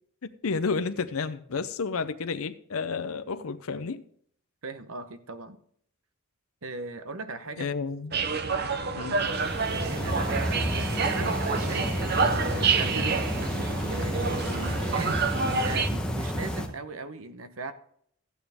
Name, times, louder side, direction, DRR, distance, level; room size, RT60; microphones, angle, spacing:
voice 1, 0.2-4.0 7.6-8.2 9.0-9.2, left 4 dB, 70° left, 0.6 m, -31 dB
voice 2, 4.6-5.6 6.6-7.7 9.7-13.2 13.9-17.7, right 3 dB, 65° right, 0.9 m, -38 dB
sound 1, 8.1-15.9, right 5 dB, 45° right, 0.7 m, -28 dB
sound 2, 9.2-16.7, equal, 5° left, 1.0 m, -30 dB
14.0 x 9.2 x 3.5 m
head